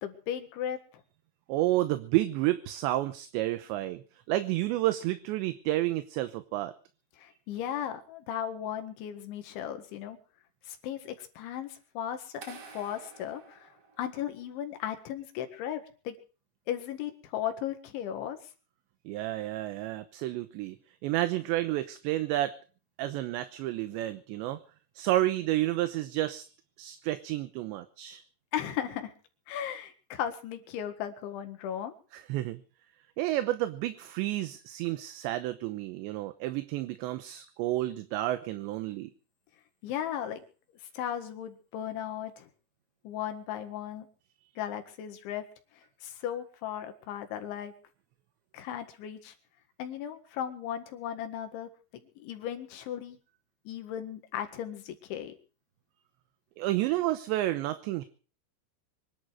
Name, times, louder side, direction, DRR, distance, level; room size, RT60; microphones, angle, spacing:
voice 1, 0.0-0.8 7.2-10.2 10.7-16.2 16.7-18.4 28.5-29.1 29.5-31.9 39.8-40.4 40.9-42.5 43.0-44.1 44.6-45.5 45.8-47.7 48.5-49.3 49.8-51.7 52.2-53.2 53.7-55.3, left 10 dB, 85° left, 7 dB, 4.1 m, -36 dB
voice 2, 1.5-4.0 4.3-6.7 19.1-20.8 21.0-22.6 23.0-24.6 25.0-26.5 26.8-28.2 32.1-32.6 33.2-39.1 56.6-58.0, right 15 dB, 80° right, 11 dB, 3.1 m, -30 dB
sound 1, 12.4-14.5, right 4 dB, 50° right, 2.0 m, -50 dB
24.0 x 11.0 x 4.9 m, 0.38 s
omnidirectional pair, 5.3 m